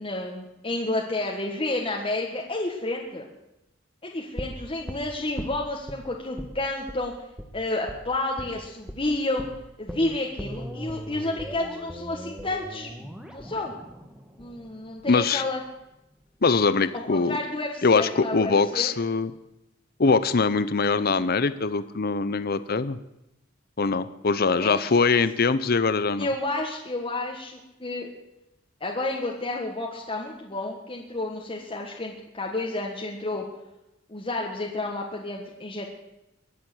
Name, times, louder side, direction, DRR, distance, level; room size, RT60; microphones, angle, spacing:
voice 1, 0.0-3.3 4.0-7.1 7.5-9.4 9.8-12.9 13.3-13.7 14.4-15.6 16.9-18.9 24.6-25.0 26.2-28.1 28.8-33.4 34.1-35.9, left 2 dB, 30° left, -1 dB, 1.6 m, -30 dB
sound 1, 4.4-6.0 6.4-6.6 6.9-7.0 7.4-7.5 7.9-8.0 8.4-8.6 8.9-9.0 9.4-15.4 15.7-15.8, equal, 5° right, 1.6 m, -39 dB
voice 2, 15.1-15.4 16.4-17.4 17.8-19.3 20.0-23.0 23.8-26.3, left 4 dB, 50° left, 14 dB, 0.7 m, -22 dB
22.5 x 7.7 x 7.8 m, 0.89 s
head